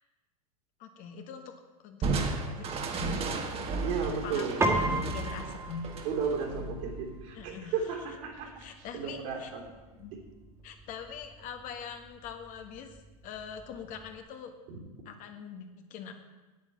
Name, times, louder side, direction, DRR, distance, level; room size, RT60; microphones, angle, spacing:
voice 1, 0.8-1.5 1.8-2.1 2.6-3.3 4.2-5.9 7.3-7.7 8.6-9.5 10.0-10.1 10.6-13.0 13.2-14.5 15.0-16.1, left 6 dB, 45° left, 6 dB, 1.5 m, -43 dB
Crushing, 2.0-7.4, right 3 dB, 30° right, 1.7 m, -34 dB
voice 2, 3.8-4.6 6.0-8.6 8.9-9.6 10.1-10.2 14.7-14.8, right 6 dB, 55° right, 1 dB, 3.2 m, -34 dB
Piano, 4.6-14.2, right 2 dB, 15° right, 2.1 m, -37 dB
9.3 x 8.4 x 7.9 m, 1.2 s
hypercardioid pair, 105°, 19 cm